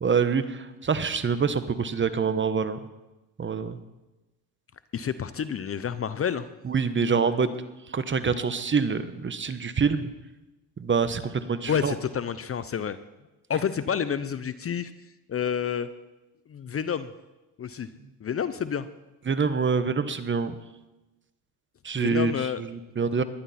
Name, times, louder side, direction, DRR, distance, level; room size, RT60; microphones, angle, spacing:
voice 1, 0.0-2.8 3.4-3.8 6.6-7.5 7.9-10.1 10.8-11.9 19.3-20.5 21.8-23.2, right 5 dB, 25° right, 12 dB, 1.1 m, -26 dB
voice 2, 4.9-6.5 11.7-13.0 13.5-14.9 15.3-15.9 16.5-17.1 17.6-17.9 18.2-18.9 22.0-22.6, left 8 dB, 30° left, 14 dB, 0.7 m, -29 dB
20.0 x 11.5 x 4.3 m, 1.0 s
supercardioid pair, 80°, 43 cm